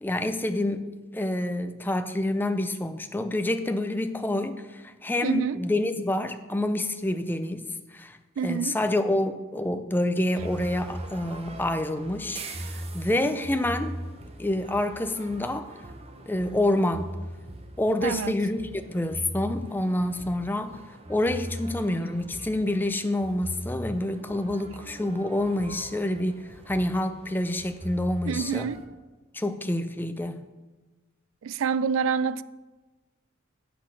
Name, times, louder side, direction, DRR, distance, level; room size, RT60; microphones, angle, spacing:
voice 1, 0.0-8.2 8.4-12.4 12.7-14.0 14.4-15.7 16.3-17.1 17.8-20.8 21.1-28.7 29.3-30.5, left 1 dB, 10° left, 0.4 m, -27 dB
voice 2, 5.2-5.6 8.4-8.8 18.0-18.4 28.3-28.9 31.4-32.4, right 6 dB, 70° right, 0.3 m, -27 dB
sound 1, 10.4-28.9, equal, 30° right, 0.8 m, -40 dB
8.5 x 6.0 x 6.4 m
head